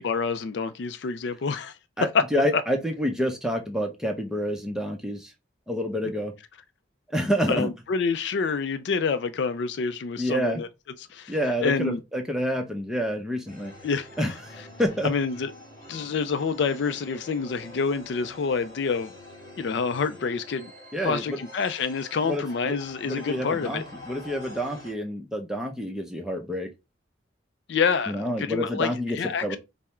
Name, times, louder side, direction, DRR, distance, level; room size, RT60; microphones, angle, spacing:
voice 1, 0.0-2.2 2.5-2.6 7.5-10.7 11.0-12.0 13.8-14.3 15.0-15.5 15.9-19.1 19.6-20.7 21.0-23.8 27.7-29.6, left 5 dB, 65° left, 0.4 m, -27 dB
voice 2, 2.0-5.3 5.7-6.3 7.1-7.7 10.2-10.6 11.3-13.7 14.2-15.1 20.9-21.4 22.2-22.7 23.0-26.7 28.1-29.6, equal, 5° right, 0.6 m, -28 dB
sound 1, 13.4-24.9, left 2 dB, 20° left, 1.9 m, -46 dB
3.5 x 2.1 x 4.2 m
head